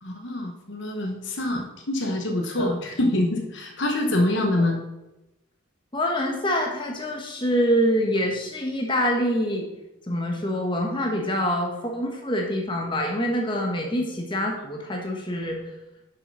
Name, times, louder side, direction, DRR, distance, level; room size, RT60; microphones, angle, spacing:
voice 1, 0.0-4.8, left 1 dB, 60° left, 3 dB, 1.1 m, -25 dB
voice 2, 5.9-9.7 10.1-15.6, equal, 25° left, 0 dB, 1.4 m, -25 dB
7.6 x 6.3 x 5.4 m, 0.97 s
head